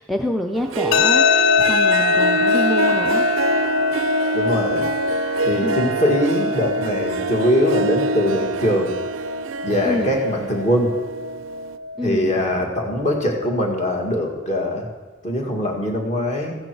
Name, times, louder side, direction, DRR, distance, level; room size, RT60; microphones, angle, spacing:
voice 1, 0.0-3.3 5.6-5.8 9.8-10.2 12.0-12.4, left 1 dB, ahead, 1 dB, 0.4 m, -26 dB
Harp, 0.6-11.8, right 4 dB, 75° right, 0.4 m, -26 dB
sound 1, 0.9-13.9, left 5 dB, 85° left, 0.5 m, -23 dB
voice 2, 4.3-4.9 5.4-8.9 9.6-10.9 12.0-14.9 15.2-16.6, equal, 35° left, 1 dB, 1.9 m, -22 dB
14.5 x 8.6 x 4.6 m, 1.3 s
head